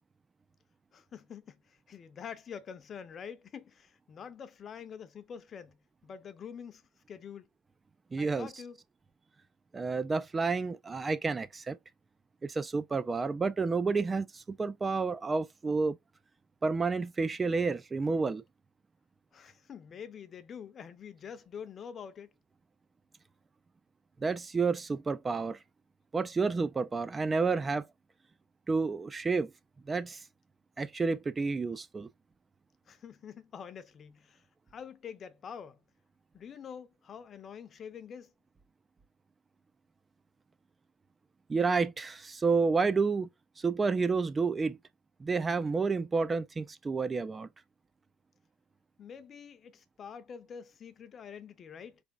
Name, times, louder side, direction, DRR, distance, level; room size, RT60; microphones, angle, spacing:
voice 1, 0.9-5.8 6.0-6.8 7.1-7.5 8.2-8.8 19.3-22.3 32.9-34.4 34.7-35.8 36.3-38.3 49.0-52.0, left 7 dB, 40° left, 0.7 m, -46 dB
voice 2, 8.1-8.5 9.7-11.8 12.4-16.0 16.6-18.4 24.2-25.6 26.1-27.8 28.7-29.5 29.9-30.2 30.8-32.1 41.5-43.3 43.6-44.8 45.2-47.5, right 4 dB, 20° right, 0.5 m, -30 dB
3.9 x 3.5 x 3.5 m
supercardioid pair, 105°, 0 cm